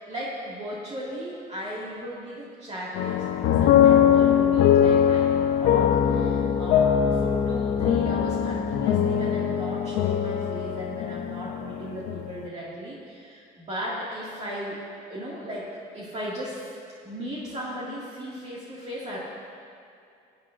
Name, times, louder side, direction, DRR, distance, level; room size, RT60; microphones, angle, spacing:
voice 1, 0.1-14.8 15.1-15.7 15.9-16.7 17.0-19.2, equal, 40° right, -7 dB, 2.2 m, -36 dB
sound 1, 2.9-12.3, left 9 dB, 90° left, 0.7 m, -21 dB
17.0 x 9.0 x 2.6 m, 2.4 s
cardioid pair, 110°, 17 cm